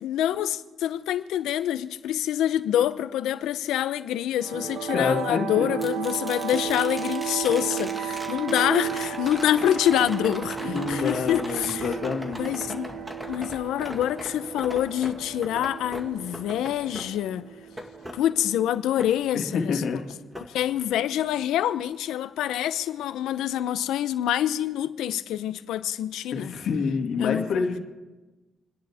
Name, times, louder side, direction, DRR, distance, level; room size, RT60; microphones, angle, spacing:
voice 1, 0.0-11.8 12.4-17.4 18.1-19.8 20.4-26.5 27.2-27.7, left 11 dB, 85° left, 0.7 m, -26 dB
sound 1, 4.4-18.5, right 9 dB, 60° right, 1.0 m, -34 dB
voice 2, 4.9-5.8 10.6-12.5 19.3-20.0 20.5-20.6 26.3-27.8, left 5 dB, 65° left, 2.3 m, -27 dB
sound 2, 5.8-19.9 20.3-21.4 23.6-23.7, equal, 5° right, 1.8 m, -40 dB
29.0 x 10.5 x 3.6 m
cardioid pair, 90°, 0 cm